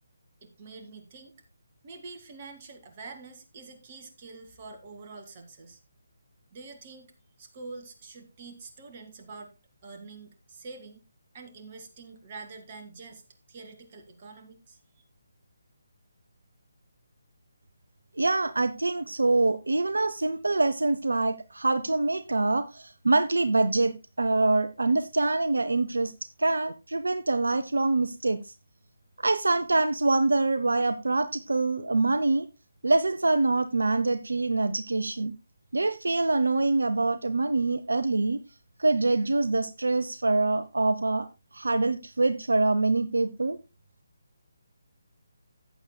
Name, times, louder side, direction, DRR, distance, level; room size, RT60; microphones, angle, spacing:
voice 1, 0.4-1.4 1.8-5.8 6.5-7.1 7.4-9.5 9.8-11.0 11.3-13.2 13.5-15.0, right 3 dB, 35° right, 2.0 m, -46 dB
voice 2, 18.2-26.1 26.4-28.5 29.2-32.5 32.8-35.3 35.7-38.4 38.8-41.3 41.5-43.6, right 2 dB, 75° right, 0.6 m, -25 dB
14.5 x 9.0 x 2.2 m
figure-of-eight pair, 145°, 0 cm